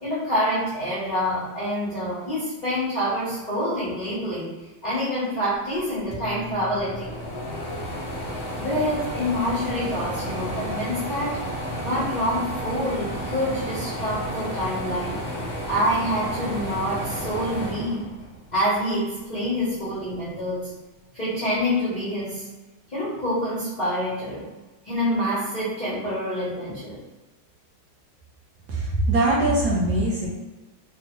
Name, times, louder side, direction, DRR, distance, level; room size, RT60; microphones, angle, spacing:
voice 1, 0.0-4.5 4.8-7.1 8.6-11.5 11.8-15.3 15.7-18.1 18.5-20.8 21.1-22.5 22.9-24.5 24.8-27.0, equal, 80° left, -10 dB, 0.4 m, -27 dB
sound 1, 5.8-5.9 6.1-18.7 19.1-20.3, equal, 55° left, 0.7 m, -32 dB
voice 2, 28.7-30.3, right 2 dB, 70° right, -5 dB, 1.0 m, -22 dB
3.4 x 2.1 x 2.9 m, 1.2 s
omnidirectional pair, 2.2 m